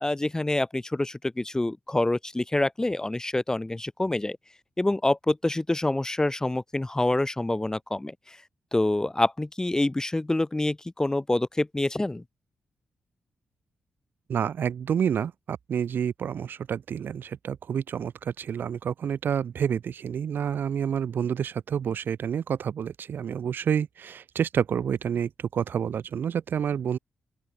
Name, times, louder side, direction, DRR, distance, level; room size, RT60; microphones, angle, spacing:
voice 1, 0.0-4.4 4.8-8.4 8.7-12.2, left 2 dB, 20° left, 1.0 m, -26 dB
voice 2, 14.3-27.0, right 8 dB, 70° right, 3.7 m, -29 dB
open air
supercardioid pair, 55°, 4 cm